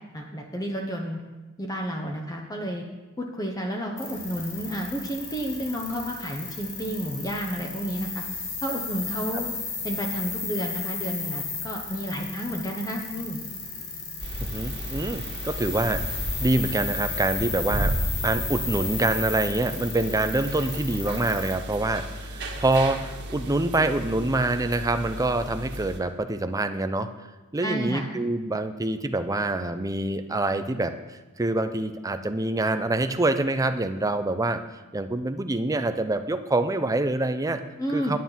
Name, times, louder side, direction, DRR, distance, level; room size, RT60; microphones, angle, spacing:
voice 1, 0.1-1.2 1.6-2.8 3.2-8.2 8.6-9.5 9.8-13.4 27.6-28.1 37.8-38.2, equal, 15° left, 1 dB, 0.9 m, -31 dB
sound 1, 4.0-21.5, left 4 dB, 85° left, 3.2 m, -34 dB
sound 2, 14.2-26.0, right 1 dB, 50° right, 1.7 m, -34 dB
voice 2, 14.4-16.0 16.4-17.9 18.2-27.1 27.5-30.9 31.4-34.6 34.9-37.6 37.9-38.2, right 2 dB, 15° right, 8 dB, 0.5 m, -26 dB
9.4 x 9.3 x 5.7 m, 1.1 s
head